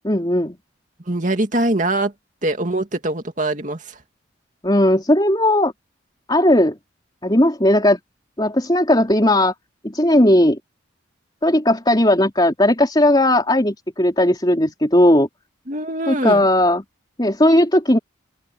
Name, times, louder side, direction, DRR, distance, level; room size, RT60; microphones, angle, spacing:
voice 1, 0.0-0.6 4.6-5.7 6.3-6.8 7.2-8.0 8.4-9.5 9.8-10.6 11.4-15.3 16.1-16.8 17.2-18.0, left 1 dB, 20° left, 3.8 m, -16 dB
voice 2, 1.1-2.1 2.4-4.0 15.7-16.4, right 1 dB, 40° right, 2.4 m, -22 dB
open air
head